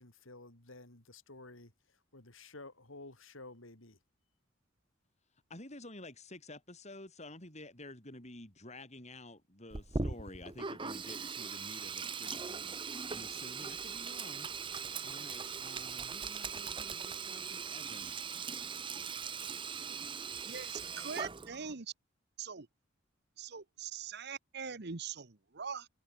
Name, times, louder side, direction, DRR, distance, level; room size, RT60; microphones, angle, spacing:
voice 1, 0.0-4.0, left 2 dB, 90° left, 4.9 m, -52 dB
voice 2, 5.5-12.7 13.1-18.1, left 2 dB, 35° left, 7.7 m, -51 dB
Sink (filling or washing), 9.7-21.7, right 5 dB, 25° right, 0.9 m, -40 dB
voice 3, 20.4-21.9 22.4-22.7 23.4-25.9, right 6 dB, 55° right, 1.2 m, -42 dB
head